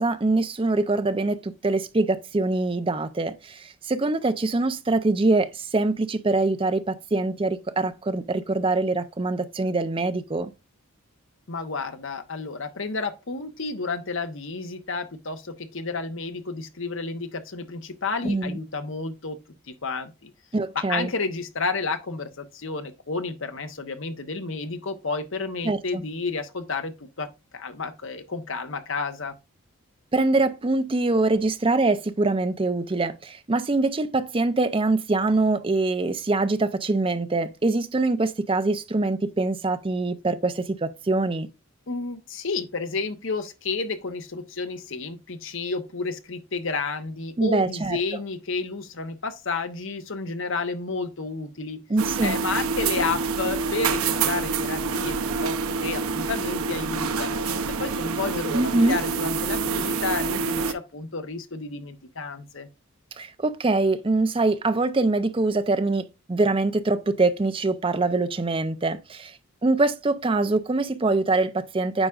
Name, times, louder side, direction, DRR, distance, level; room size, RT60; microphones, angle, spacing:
voice 1, 0.0-10.5 18.2-18.6 20.5-21.1 25.6-26.0 30.1-41.5 47.4-48.0 51.9-52.4 58.5-59.0 63.2-72.1, right 2 dB, 25° right, 0.5 m, -24 dB
voice 2, 11.5-19.4 19.7-20.3 20.7-27.3 27.5-29.3 41.9-51.8 52.2-62.7, left 4 dB, 60° left, 0.9 m, -31 dB
sound 1, 52.0-60.7, right 4 dB, 75° right, 0.7 m, -27 dB
8.8 x 4.9 x 2.4 m
head